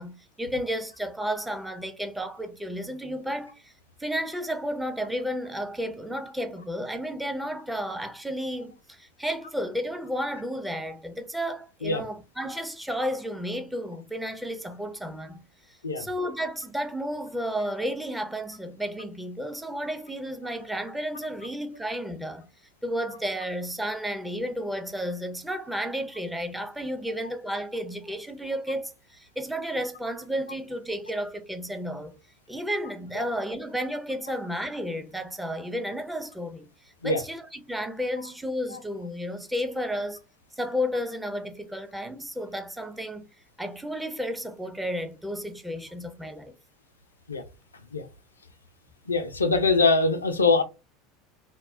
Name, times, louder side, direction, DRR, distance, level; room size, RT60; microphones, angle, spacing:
voice 1, 0.0-3.7 4.0-15.4 16.0-22.5 22.8-32.1 32.5-36.7 37.0-40.2 40.6-43.3 43.6-46.5, equal, 5° right, 0.5 m, -32 dB
voice 2, 49.1-50.6, left 3 dB, 85° left, 0.4 m, -22 dB
2.2 x 2.0 x 3.6 m
figure-of-eight pair, 75°, 0 cm